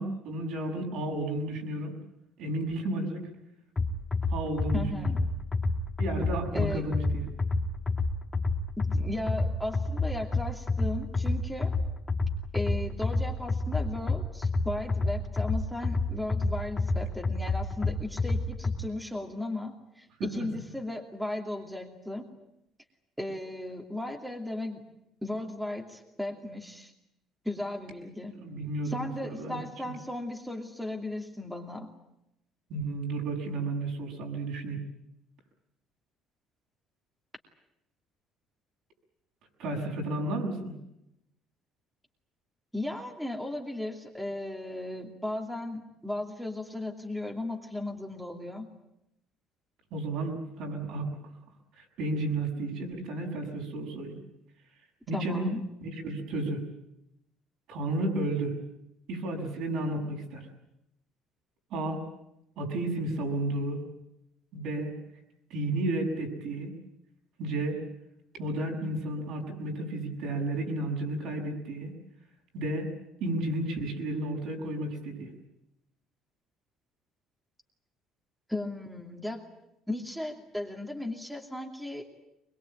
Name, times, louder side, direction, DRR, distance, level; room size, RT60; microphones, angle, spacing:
voice 1, 0.0-1.9 2.4-3.3 4.3-5.1 6.0-7.2 28.4-29.6 32.7-34.8 39.6-40.7 49.9-51.1 51.8-54.2 55.1-55.5 55.8-56.6 57.7-58.6 59.1-60.5 61.7-62.0 62.6-63.8 64.5-64.9 65.5-66.7 67.4-67.8 68.4-71.9 72.5-72.9 73.2-75.3, right 2 dB, 70° right, 1 dB, 7.1 m, -32 dB
sound 1, 3.8-18.8, left 3 dB, 20° left, 2.5 m, -29 dB
voice 2, 4.7-5.2 6.5-6.8 8.8-11.7 12.5-22.3 23.2-24.8 25.2-26.9 27.4-28.4 28.8-31.9 42.7-48.7 55.1-55.6 78.5-79.4 79.9-82.1, left 1 dB, ahead, 2 dB, 2.7 m, -36 dB
23.0 x 22.0 x 9.0 m, 0.84 s
cardioid pair, 115°, 0 cm